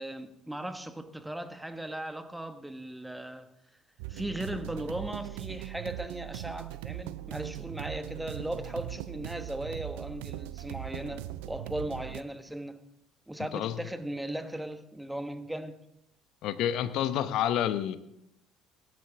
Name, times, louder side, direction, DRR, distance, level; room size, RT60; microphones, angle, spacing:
voice 1, 0.0-3.5 4.1-12.8 13.3-15.8, right 1 dB, 5° right, 1.3 m, -37 dB
sound 1, 4.0-12.2, right 16 dB, 70° right, 0.4 m, -40 dB
voice 2, 16.4-18.0, left 10 dB, 60° left, 0.9 m, -28 dB
17.5 x 11.5 x 3.6 m
figure-of-eight pair, 55°, 0 cm